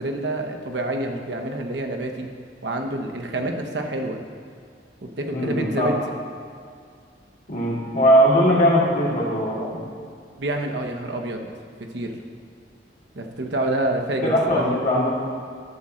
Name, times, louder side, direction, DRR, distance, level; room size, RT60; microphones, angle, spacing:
voice 1, 0.0-2.3 2.6-4.2 5.2-6.0 10.4-11.5 11.9-12.1 13.1-14.6, right 1 dB, 85° right, 3 dB, 0.9 m, -27 dB
voice 2, 5.3-5.9 7.5-9.7 14.2-15.1, equal, 50° left, -6 dB, 2.3 m, -19 dB
11.0 x 4.3 x 6.3 m, 2.2 s
head